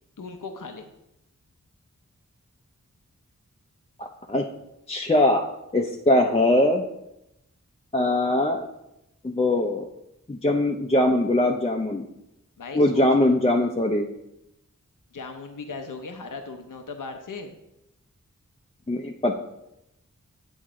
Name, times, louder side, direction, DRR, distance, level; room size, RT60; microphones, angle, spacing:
voice 1, 0.2-0.9 12.6-13.3 15.1-17.6, left 4 dB, 85° left, 5 dB, 0.8 m, -37 dB
voice 2, 4.0-4.5 4.9-5.5 5.7-6.8 7.9-8.7 9.2-9.9 10.3-12.0 12.7-14.1 18.9-19.4, left 1 dB, 20° left, 1 dB, 0.6 m, -21 dB
8.8 x 7.1 x 3.7 m, 0.87 s
wide cardioid pair, 65°, 31 cm